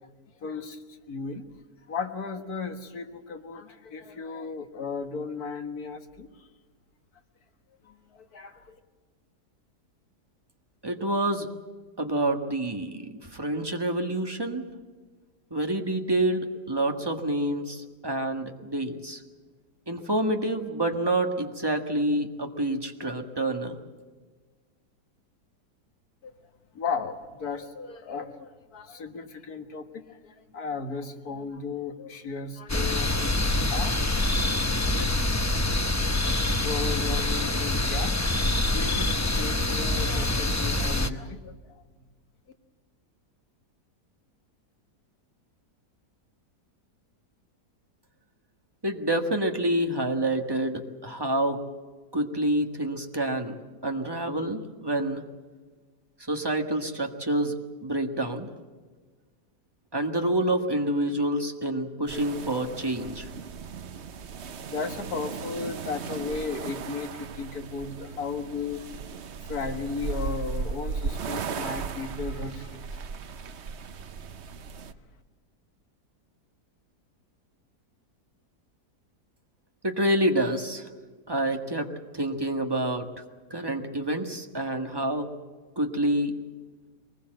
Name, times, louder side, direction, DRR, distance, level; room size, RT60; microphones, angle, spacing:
voice 1, 0.4-0.8 1.1-1.5 1.9-6.3 7.8-8.7 26.2-26.3 26.7-33.4 33.7-34.0 34.9-35.4 36.6-38.3 38.6-41.5 64.6-68.8 69.5-73.0, left 5 dB, 65° left, 6 dB, 2.1 m, -35 dB
voice 2, 10.8-11.5 12.0-14.6 15.5-19.2 19.9-23.8 48.8-51.6 52.1-53.6 53.8-55.2 56.3-58.5 59.9-63.3 79.8-80.9 81.3-81.9 82.1-83.1 83.5-85.3 85.8-86.3, right 1 dB, 15° right, 4 dB, 1.5 m, -27 dB
sound 1, 32.7-41.1, left 2 dB, 20° left, 0.5 m, -25 dB
sound 2, 62.1-74.9, right 5 dB, 50° right, 0.9 m, -36 dB
23.0 x 20.5 x 7.8 m, 1.4 s
omnidirectional pair, 1.8 m